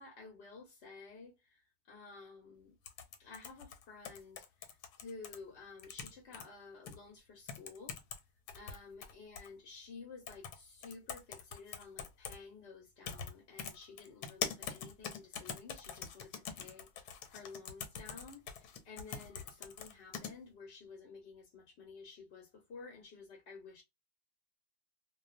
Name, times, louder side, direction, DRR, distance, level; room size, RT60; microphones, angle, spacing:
voice 1, 0.0-2.7 3.2-8.0 8.5-23.8, left 4 dB, 60° left, 0.7 m, -53 dB
sound 1, 2.9-5.4 5.8-6.5 6.9-7.0 7.5-8.2 8.5-9.5 10.3-10.6 10.8-12.4 13.1-13.3 13.6-20.3, left 7 dB, 90° left, 1.2 m, -43 dB
2.3 x 2.3 x 2.4 m
omnidirectional pair, 1.6 m